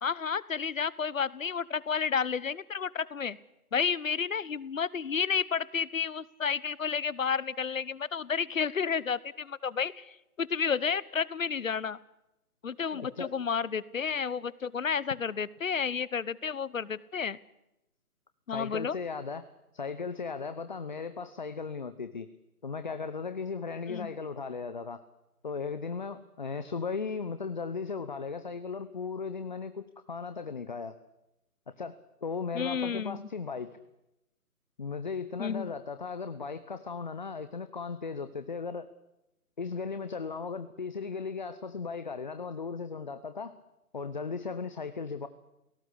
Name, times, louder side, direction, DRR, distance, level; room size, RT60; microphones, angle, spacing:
voice 1, 0.0-3.4 3.7-12.0 12.6-17.4 18.5-19.0 23.9-24.1 32.5-33.3 35.4-35.7, left 6 dB, 60° left, 21 dB, 1.1 m, -31 dB
voice 2, 12.9-13.3 18.5-19.5 19.7-22.3 22.6-25.0 25.4-31.0 31.7-33.7 34.8-38.9 39.6-43.5 43.9-45.3, left 5 dB, 30° left, 11 dB, 0.8 m, -36 dB
28.5 x 18.0 x 8.3 m, 0.91 s
figure-of-eight pair, 155°, 46 cm